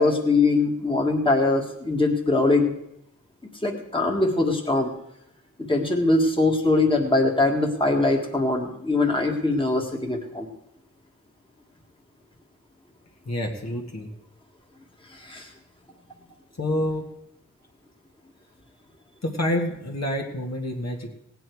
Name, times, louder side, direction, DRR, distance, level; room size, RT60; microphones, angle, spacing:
voice 1, 0.0-2.7 3.6-4.9 5.7-10.5 15.3-15.4, left 2 dB, 15° left, 1 dB, 1.7 m, -22 dB
voice 2, 13.3-14.1 16.6-17.1 19.2-21.1, left 1 dB, 55° left, 0 dB, 1.8 m, -28 dB
17.0 x 9.1 x 4.7 m, 0.79 s
wide cardioid pair, 65°, 32 cm